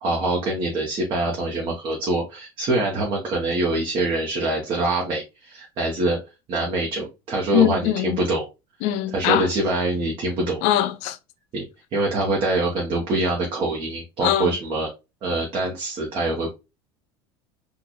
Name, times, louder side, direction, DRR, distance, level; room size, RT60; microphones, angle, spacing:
voice 1, 0.0-6.2 6.5-8.5 9.1-10.6 11.5-11.6 11.9-14.9 15.2-16.5, right 2 dB, 45° right, 1.0 m, -24 dB
voice 2, 7.5-8.2 8.8-9.5 10.6-11.2 14.2-14.5, left 12 dB, 65° left, 0.4 m, -21 dB
3.7 x 2.5 x 3.0 m
supercardioid pair, 120°, 12 cm